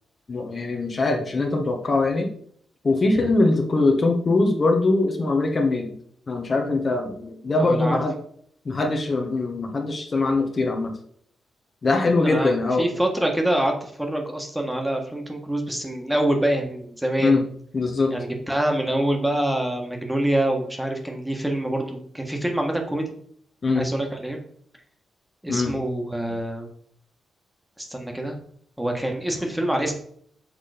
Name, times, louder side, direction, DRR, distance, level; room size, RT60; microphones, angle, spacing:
voice 1, 0.3-2.3 2.8-5.9 6.3-8.1 8.6-10.9 11.8-12.9 17.2-17.4 17.7-18.1 23.6-23.9 25.5-25.7, left 3 dB, 45° left, 2 dB, 1.3 m, -22 dB
voice 2, 7.6-8.0 11.9-17.4 18.1-23.1 23.8-24.4 25.4-26.7 27.8-28.3 28.8-30.0, right 1 dB, 10° right, 2 dB, 1.5 m, -25 dB
6.6 x 3.7 x 5.0 m, 0.63 s
cardioid pair, 70°, 0 cm